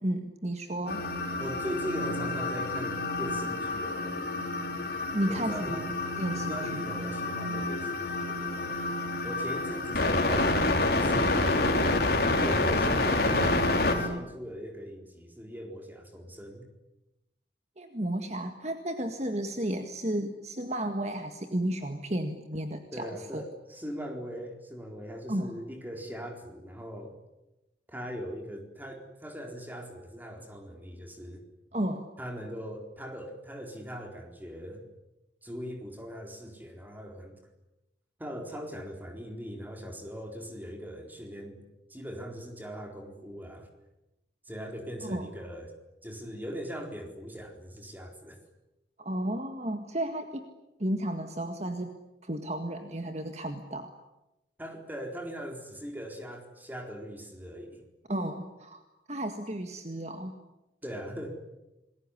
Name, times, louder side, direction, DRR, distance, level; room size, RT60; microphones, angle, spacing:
voice 1, 0.0-1.1 5.1-6.8 17.8-23.1 23.3-23.4 25.3-25.5 31.7-32.1 45.0-45.3 49.0-50.5 50.8-51.9 52.2-53.9 58.1-58.8 59.1-60.3, right 1 dB, 35° right, 6 dB, 1.8 m, -33 dB
sound 1, 0.9-14.1, left 2 dB, 55° left, 4.1 m, -28 dB
voice 2, 1.4-4.1 5.3-5.9 6.3-8.8 9.2-11.6 12.4-13.7 13.9-16.7 22.9-27.2 27.9-31.4 32.2-34.9 35.4-37.4 38.2-41.6 41.9-43.7 44.5-45.7 46.0-48.4 54.6-57.8 60.8-61.4, equal, 10° right, 3 dB, 4.2 m, -40 dB
28.0 x 21.0 x 9.9 m, 0.98 s
head